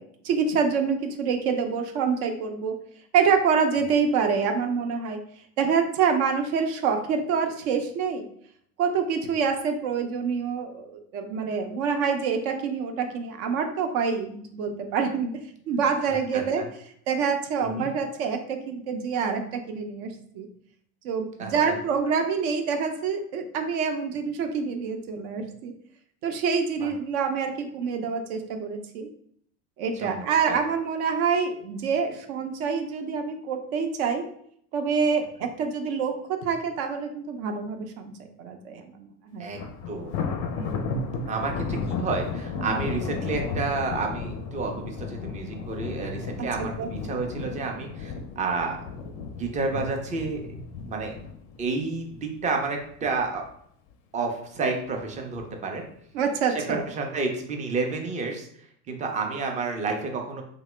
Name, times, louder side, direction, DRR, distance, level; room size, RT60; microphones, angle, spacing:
voice 1, 0.0-2.7 3.1-5.2 5.6-8.3 8.8-15.3 15.7-16.6 17.1-20.5 21.0-25.7 26.2-29.1 29.8-34.2 34.7-38.1 38.4-39.5 40.6-41.0 42.6-42.8 46.4-46.5 46.8-46.9 56.1-56.8, right 6 dB, 55° right, 4 dB, 0.7 m, -26 dB
voice 2, 16.0-16.7 17.6-17.9 21.4-21.8 26.8-26.9 30.0-30.6 39.4-39.6 39.9-40.1 41.3-48.8 49.4-50.4 50.8-51.1 51.6-53.4 54.1-55.8 56.5-58.5 58.9-60.4, right 4 dB, 15° right, 3 dB, 0.4 m, -30 dB
Thunder, 39.5-52.8 53.2-53.5 53.9-54.0 54.9-55.4, left 4 dB, 45° left, 0.5 m, -34 dB
2.9 x 2.0 x 3.2 m, 0.66 s
hypercardioid pair, 80°, 50 cm